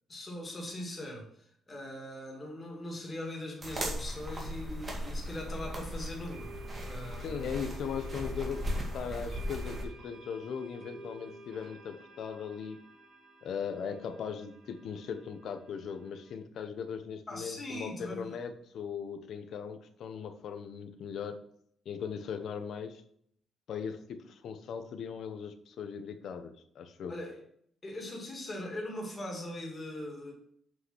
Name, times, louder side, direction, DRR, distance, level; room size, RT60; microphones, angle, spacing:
voice 1, 0.1-6.6 6.8-7.5 17.3-18.4 27.1-27.3 27.8-30.3, left 1 dB, 20° left, 0 dB, 2.6 m, -40 dB
sound 1, 3.6-9.8, equal, 25° right, 2.0 m, -37 dB
sound 2, 5.3-5.4 6.3-16.4, right 2 dB, 75° right, 3.5 m, -53 dB
voice 2, 7.2-12.8 13.4-21.4 21.8-23.0 23.7-27.1, left 7 dB, 60° left, 9 dB, 1.0 m, -39 dB
7.9 x 5.8 x 6.3 m, 0.67 s
cardioid pair, 165°, 0 cm